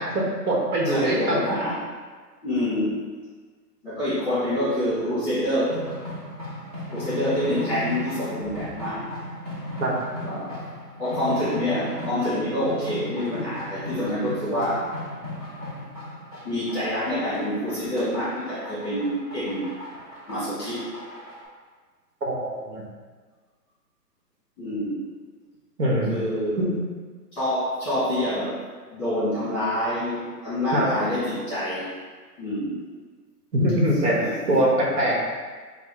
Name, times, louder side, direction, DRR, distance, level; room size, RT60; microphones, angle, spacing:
voice 1, 0.0-1.4 9.8-9.9 22.2-22.8 25.8-26.1 26.6-26.7 30.7-30.9 33.5-34.2 34.5-35.2, right 1 dB, 65° right, -3 dB, 1.2 m, -22 dB
voice 2, 0.8-1.8 2.4-3.0 3.8-5.9 6.9-9.1 10.2-10.7 11.0-14.9 16.4-19.7 20.3-20.8 24.6-25.0 26.1-26.7 27.3-28.6 28.9-31.9 32.4-32.8 34.2-34.3, left 1 dB, 15° left, -11 dB, 1.1 m, -27 dB
sound 1, 5.7-21.4, left 1 dB, 25° right, 0.5 m, -37 dB
4.7 x 2.3 x 3.5 m, 1.5 s
hypercardioid pair, 170°, 50 cm